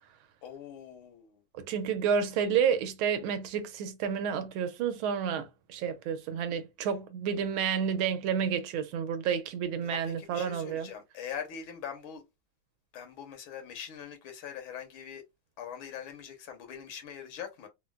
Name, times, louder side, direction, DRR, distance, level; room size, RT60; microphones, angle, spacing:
voice 1, 0.4-1.4 9.8-12.2 12.9-15.2 15.6-17.7, left 8 dB, 85° left, 1.8 m, -42 dB
voice 2, 1.5-10.9, right 7 dB, 85° right, 1.5 m, -30 dB
4.2 x 2.1 x 2.3 m
omnidirectional pair, 2.2 m